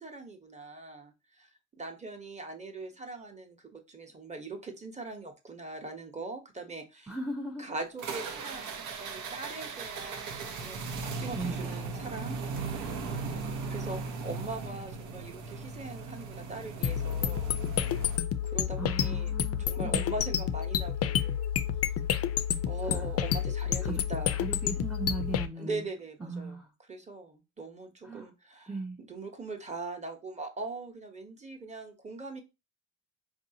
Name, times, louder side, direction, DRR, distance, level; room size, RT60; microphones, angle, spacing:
voice 1, 0.0-1.5 1.8-7.1 7.6-12.4 13.7-17.5 18.5-21.5 22.6-24.4 25.6-26.6 26.9-28.7 29.0-32.4, right 3 dB, 25° right, 1.0 m, -41 dB
voice 2, 7.1-7.6 11.3-11.6 18.8-20.0 22.8-23.1 23.8-24.0 24.3-25.9 26.2-26.7 28.0-28.3 28.7-29.0, right 2 dB, 5° right, 0.5 m, -37 dB
sound 1, 8.0-18.2, right 4 dB, 80° right, 0.9 m, -38 dB
sound 2, 16.8-25.5, left 9 dB, 50° left, 0.5 m, -30 dB
4.6 x 2.7 x 2.8 m
cardioid pair, 90°, 30 cm